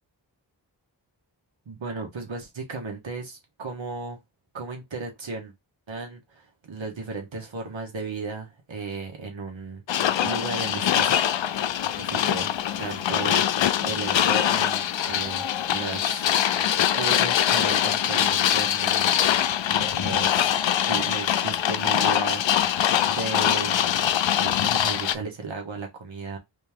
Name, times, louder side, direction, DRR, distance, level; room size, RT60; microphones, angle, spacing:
voice 1, 1.6-4.2 4.5-5.5 5.9-11.1 12.0-16.2 16.9-19.2 19.7-20.6 20.9-23.8 24.4-26.4, right 4 dB, 85° right, 1.6 m, -35 dB
sound 1, 9.9-25.2, left 10 dB, 75° left, 0.5 m, -23 dB
4.2 x 2.9 x 3.6 m
wide cardioid pair, 75°, 45 cm